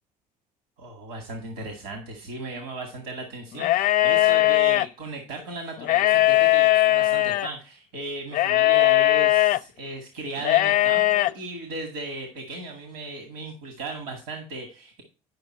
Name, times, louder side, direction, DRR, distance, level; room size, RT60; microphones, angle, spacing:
voice 1, 0.8-15.0, right 2 dB, 75° right, 4 dB, 2.1 m, -36 dB
sound 1, 3.6-4.9 5.8-7.5 8.3-9.6 10.4-11.3, left 16 dB, 50° left, 0.5 m, -19 dB
10.5 x 5.7 x 4.4 m, 0.35 s
hypercardioid pair, 60°, 18 cm